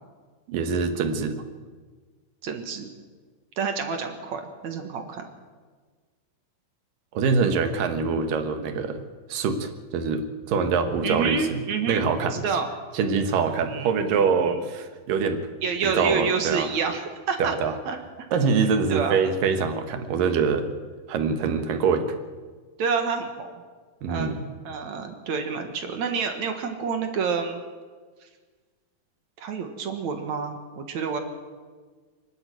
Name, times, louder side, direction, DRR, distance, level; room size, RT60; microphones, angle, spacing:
voice 1, 0.5-1.4 7.1-9.0 9.3-11.6 11.9-12.4 12.9-15.4 15.8-16.7 17.4-17.7 18.3-20.7 21.1-22.1 24.0-24.5, right 5 dB, 85° right, 8 dB, 3.0 m, -24 dB
voice 2, 2.4-2.9 3.6-5.2 11.0-12.7 13.6-13.9 14.4-14.6 15.6-17.5 17.9-18.3 18.6-19.2 22.8-23.5 24.1-24.3 24.6-27.6 29.4-31.2, right 5 dB, 65° right, 6 dB, 2.8 m, -28 dB
24.0 x 12.0 x 9.3 m, 1.5 s
omnidirectional pair, 3.8 m